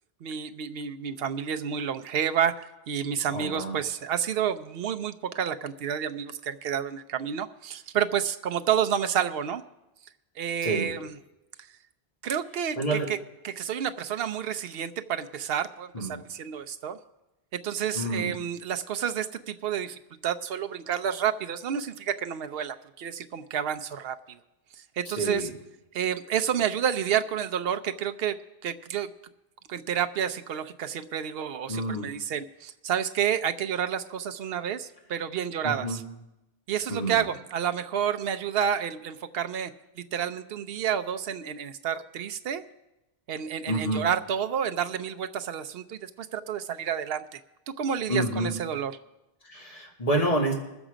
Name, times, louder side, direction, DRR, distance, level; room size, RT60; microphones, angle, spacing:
voice 1, 0.2-9.6 10.4-11.2 12.2-13.2 13.4-17.0 17.5-24.4 25.0-25.5 25.9-28.4 28.6-29.1 29.7-36.0 36.7-39.7 40.0-42.6 43.3-47.4 47.8-48.9, right 8 dB, 70° right, 9 dB, 0.8 m, -30 dB
voice 2, 3.3-3.8 10.6-10.9 12.8-13.1 15.9-16.2 17.9-18.3 25.1-25.5 31.7-32.1 35.6-36.0 36.9-37.2 43.7-44.1 48.1-48.5 49.4-50.5, right 1 dB, 35° left, -2 dB, 2.2 m, -28 dB
20.0 x 7.2 x 5.0 m, 0.96 s
omnidirectional pair, 1.0 m